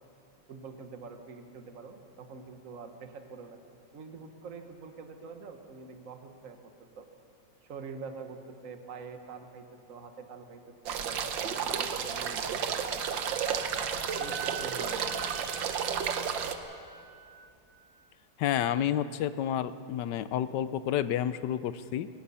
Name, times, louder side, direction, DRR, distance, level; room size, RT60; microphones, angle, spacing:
voice 1, 0.5-3.6 3.9-7.0 7.6-12.6 13.3-13.4 14.2-15.2, right 4 dB, 45° right, 6 dB, 1.6 m, -45 dB
sound 1, 10.9-16.6, right 7 dB, 80° right, 1.7 m, -32 dB
Wind instrument woodwind instrument, 13.0-17.4, right 5 dB, 15° left, 6.0 m, -45 dB
voice 2, 18.4-22.1, left 10 dB, 70° left, 14 dB, 1.2 m, -30 dB
27.5 x 18.0 x 5.6 m, 2.5 s
omnidirectional pair, 2.0 m